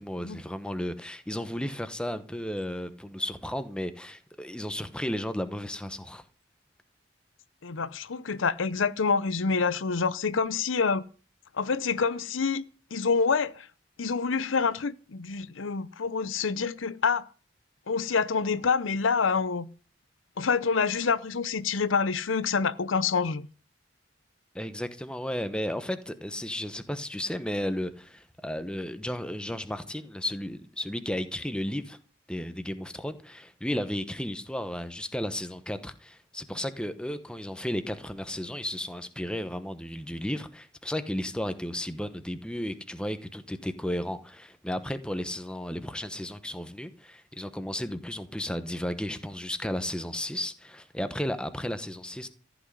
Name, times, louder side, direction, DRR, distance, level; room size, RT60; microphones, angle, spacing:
voice 1, 0.0-6.2 24.5-32.0 32.3-52.3, left 1 dB, 5° left, 1.0 m, -34 dB
voice 2, 7.6-11.0 11.6-12.6 12.9-13.7 14.0-17.3 17.9-19.7 20.4-23.5, left 5 dB, 90° left, 0.7 m, -27 dB
14.5 x 6.2 x 9.9 m
head